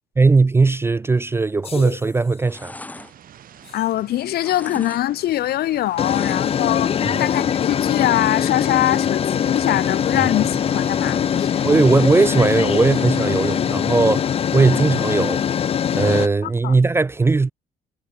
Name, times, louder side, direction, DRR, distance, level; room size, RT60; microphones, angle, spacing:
voice 1, 0.2-2.8 7.1-7.2 10.2-10.3 11.6-15.4 15.9-17.5, right 3 dB, 15° right, 0.4 m, -18 dB
sound 1, 1.6-2.1 3.8-3.9 6.0-16.3, left 8 dB, 35° left, 0.5 m, -22 dB
sound 2, 1.6-1.9 2.2-4.0 4.3-5.0 5.3-6.7 7.1-7.2, left 2 dB, 10° left, 1.2 m, -39 dB
sound 3, 2.9-13.6, right 10 dB, 55° right, 4.6 m, -44 dB
voice 2, 3.7-11.7 16.4-16.8, left 14 dB, 70° left, 2.0 m, -23 dB
cardioid pair, 110°, 17 cm